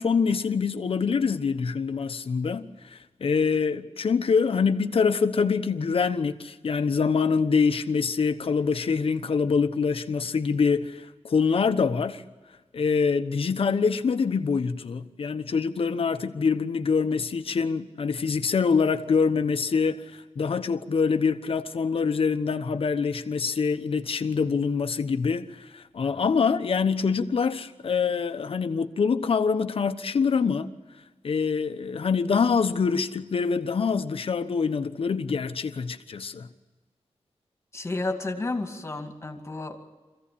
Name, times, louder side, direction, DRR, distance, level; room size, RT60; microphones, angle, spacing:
voice 1, 0.0-12.2 12.7-30.7 31.2-36.5, left 5 dB, 55° left, 1.1 m, -25 dB
voice 2, 37.7-39.8, left 2 dB, 25° left, 2.4 m, -31 dB
25.0 x 16.0 x 8.6 m
wide cardioid pair, 145°, 11 cm